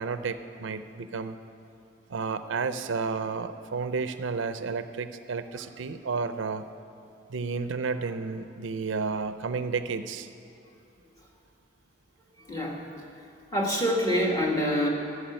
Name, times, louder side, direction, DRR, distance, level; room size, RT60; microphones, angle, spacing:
voice 1, 0.0-1.4 2.1-6.6 7.3-10.3, right 4 dB, 75° right, 10 dB, 0.5 m, -31 dB
voice 2, 12.5-12.8 13.5-14.9, equal, 20° left, -1 dB, 1.8 m, -25 dB
13.0 x 7.1 x 9.0 m, 2.6 s
head